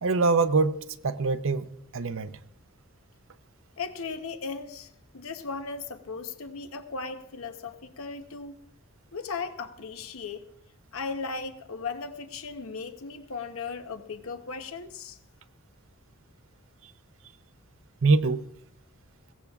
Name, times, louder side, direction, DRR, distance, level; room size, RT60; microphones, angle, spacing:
voice 1, 0.0-1.7 1.9-2.3 18.0-18.5, right 3 dB, 65° right, 0.7 m, -24 dB
voice 2, 3.8-8.6 9.1-10.5 10.9-15.2, left 4 dB, 70° left, 0.8 m, -37 dB
21.5 x 16.5 x 2.4 m
head